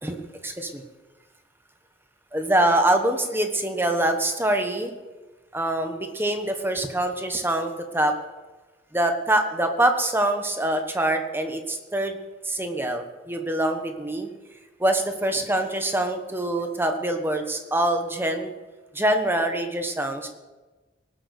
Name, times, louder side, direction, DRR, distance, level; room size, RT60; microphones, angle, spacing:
voice 1, 0.4-0.8 2.3-4.9 5.5-8.1 8.9-12.2 12.4-14.3 14.8-18.5 18.9-20.3, right 1 dB, 10° right, 5 dB, 1.2 m, -24 dB
18.5 x 8.0 x 6.5 m, 1.2 s
head